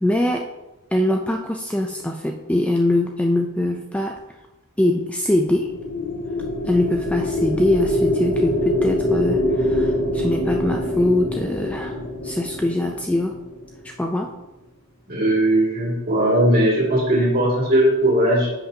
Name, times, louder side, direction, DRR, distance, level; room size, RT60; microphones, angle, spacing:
voice 1, 0.0-0.5 0.9-4.2 4.8-5.7 6.7-12.0 12.2-13.4 13.8-14.3, left 1 dB, 5° left, 2 dB, 0.3 m, -22 dB
sound 1, 5.5-13.9, left 1 dB, 65° left, 1.7 m, -24 dB
voice 2, 15.1-18.5, right 1 dB, 40° right, -4 dB, 2.3 m, -18 dB
10.0 x 5.7 x 2.8 m, 1.0 s
head